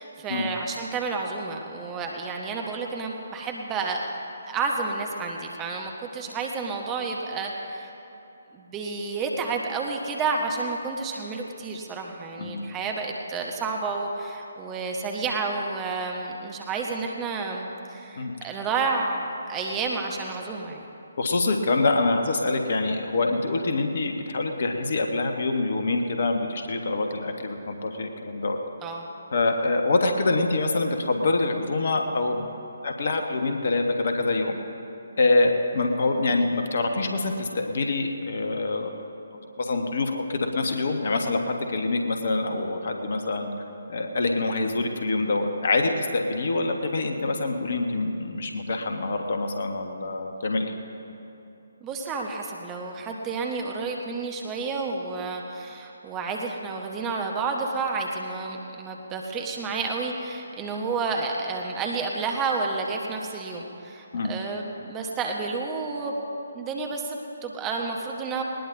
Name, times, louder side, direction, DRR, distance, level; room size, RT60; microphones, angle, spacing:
voice 1, 0.0-4.0 4.5-7.9 8.5-20.9 28.8-29.0 51.8-66.3 66.5-68.4, right 4 dB, 15° right, 1 dB, 1.2 m, -30 dB
voice 2, 21.2-28.6 29.3-32.5 32.8-34.6 35.2-38.9 39.6-43.5 43.9-50.7 64.1-64.3, left 3 dB, 50° left, 4 dB, 1.4 m, -25 dB
19.5 x 19.5 x 2.7 m, 2.9 s
figure-of-eight pair, 140°, 0 cm